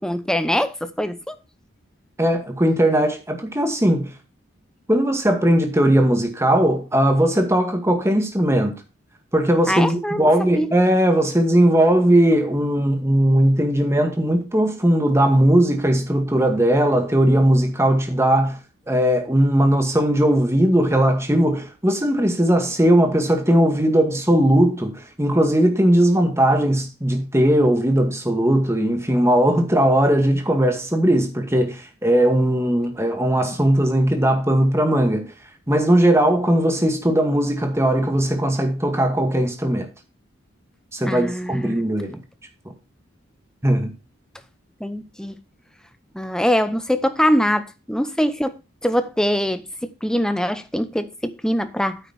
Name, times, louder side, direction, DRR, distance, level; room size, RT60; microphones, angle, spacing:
voice 1, 0.0-1.4 9.7-10.3 10.5-10.7 41.1-41.8 44.8-45.4 46.1-48.5 48.8-52.0, equal, 5° left, 0.8 m, -23 dB
voice 2, 2.2-4.1 4.9-8.7 9.3-18.6 18.9-35.3 35.7-39.9 40.9-42.2 43.6-43.9, right 1 dB, 15° right, 2.0 m, -18 dB
9.1 x 8.9 x 4.2 m
head